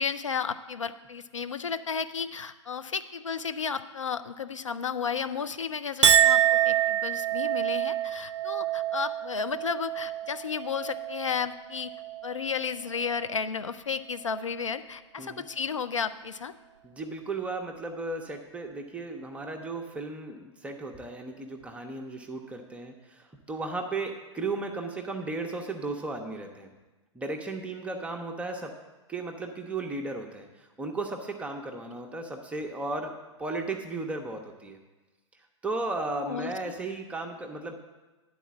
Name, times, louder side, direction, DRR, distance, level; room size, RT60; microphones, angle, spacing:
voice 1, 0.0-11.9 12.2-16.5 31.9-32.0 36.2-36.7, left 6 dB, 75° left, 11 dB, 0.5 m, -33 dB
Chink clink, 6.0-12.6 13.0-13.5, right 10 dB, 65° right, 0.4 m, -27 dB
voice 2, 16.8-26.7 27.1-28.7 29.1-33.1 33.4-34.8 35.6-37.7, right 3 dB, 10° right, 2 dB, 0.6 m, -35 dB
10.0 x 4.1 x 7.3 m, 1.2 s
figure-of-eight pair, 105°, 16 cm